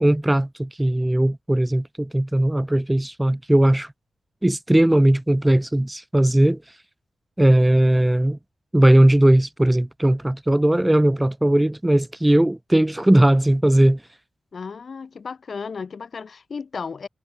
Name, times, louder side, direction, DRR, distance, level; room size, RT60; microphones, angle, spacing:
voice 1, 0.0-3.9 4.4-6.6 7.4-8.4 8.7-14.0, right 1 dB, 10° right, 0.3 m, -18 dB
voice 2, 14.5-17.1, left 5 dB, 45° left, 0.8 m, -34 dB
wide cardioid pair, 170°, 0 cm